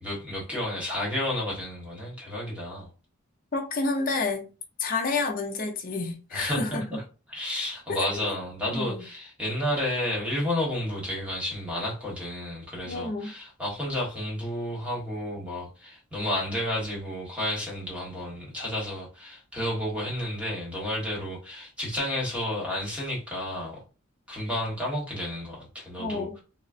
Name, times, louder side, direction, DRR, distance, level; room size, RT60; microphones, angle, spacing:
voice 1, 0.0-2.9 6.3-7.0 7.3-23.8 24.3-26.4, left 1 dB, 5° right, 1.1 m, -31 dB
voice 2, 3.5-4.5 4.8-6.9 8.0-8.2 8.7-9.0 12.9-13.3 26.0-26.4, left 3 dB, 45° left, 0.6 m, -29 dB
3.8 x 2.0 x 2.4 m
head